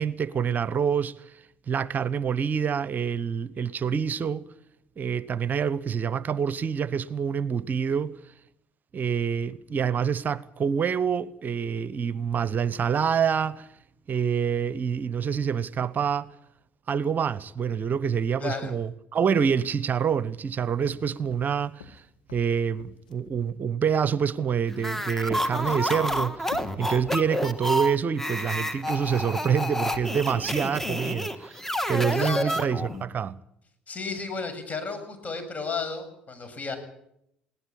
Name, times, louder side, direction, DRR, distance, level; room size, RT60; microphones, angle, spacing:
voice 1, 0.0-4.4 5.0-8.2 8.9-13.7 14.1-16.3 16.9-22.0 22.3-26.5 26.8-31.6 31.9-33.4, right 7 dB, 45° right, 0.9 m, -27 dB
voice 2, 18.4-18.7 32.1-32.7 33.9-36.8, left 4 dB, 35° left, 7.1 m, -33 dB
sound 1, 20.8-23.4 25.1-27.6 28.5-31.1, left 6 dB, 85° left, 1.5 m, -47 dB
sound 2, 24.8-33.0, equal, 10° left, 2.4 m, -29 dB
21.0 x 18.0 x 8.6 m
hypercardioid pair, 55°, 4 cm